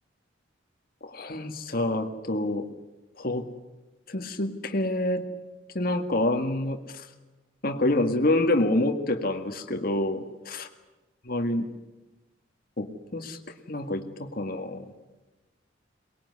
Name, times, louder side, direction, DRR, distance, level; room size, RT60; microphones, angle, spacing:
voice 1, 1.0-2.7 3.2-3.5 4.1-5.3 5.7-6.8 7.6-10.7 11.3-11.7 12.8-13.4 13.7-14.9, left 1 dB, 50° left, 6 dB, 2.0 m, -27 dB
23.5 x 21.0 x 9.8 m, 1.1 s
head